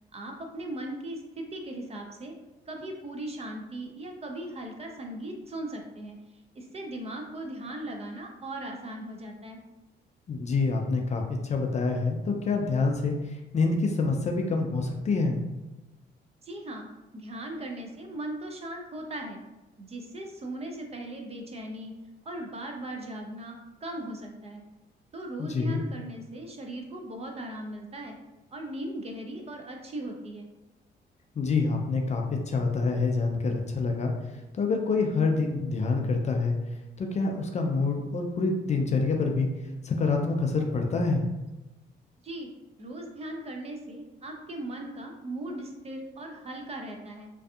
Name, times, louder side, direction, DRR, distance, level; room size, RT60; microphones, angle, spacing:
voice 1, 0.1-2.4 2.7-9.6 16.4-16.9 17.1-19.4 19.8-21.9 22.3-24.6 25.1-28.1 28.5-30.5 42.2-42.5 42.8-47.3, right 1 dB, 30° right, 2 dB, 0.5 m, -38 dB
voice 2, 10.3-15.4 25.4-25.8 31.4-34.1 34.5-36.6 37.0-39.5 39.8-41.3, left 4 dB, 35° left, 2 dB, 0.4 m, -26 dB
2.6 x 2.3 x 2.3 m, 1.1 s
cardioid pair, 90°, 20 cm